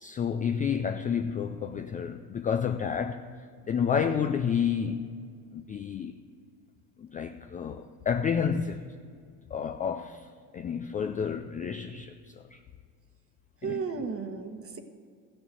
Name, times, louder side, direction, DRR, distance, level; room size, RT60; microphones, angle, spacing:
voice 1, 0.0-3.3 3.7-5.1 5.5-6.1 7.0-8.9 9.5-10.3 10.5-12.6 13.6-13.8, left 7 dB, 20° left, 0.3 m, -30 dB
voice 2, 13.6-14.8, right 5 dB, 30° right, 1.2 m, -34 dB
14.0 x 6.3 x 7.7 m
supercardioid pair, 90°, 43 cm